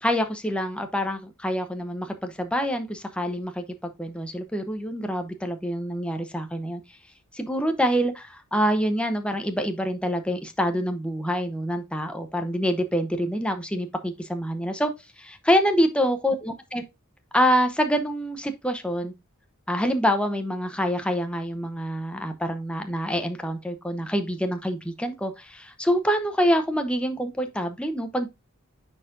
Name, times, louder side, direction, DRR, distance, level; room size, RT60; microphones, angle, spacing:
voice 1, 0.0-6.8 7.3-14.9 15.2-16.8 17.3-19.1 19.7-28.3, equal, 5° left, 0.7 m, -26 dB
9.6 x 4.4 x 2.5 m
head